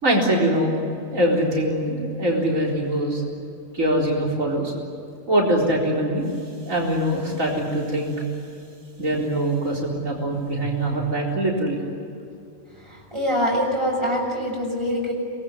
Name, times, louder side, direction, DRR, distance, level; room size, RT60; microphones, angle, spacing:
voice 1, 0.0-0.7 1.1-3.2 3.7-4.7 5.3-6.3 6.7-8.1 9.0-11.8, right 1 dB, 85° right, -2 dB, 4.6 m, -23 dB
voice 2, 12.8-15.1, equal, 20° right, -1 dB, 7.0 m, -24 dB
26.5 x 20.5 x 9.7 m, 2.5 s
omnidirectional pair, 1.3 m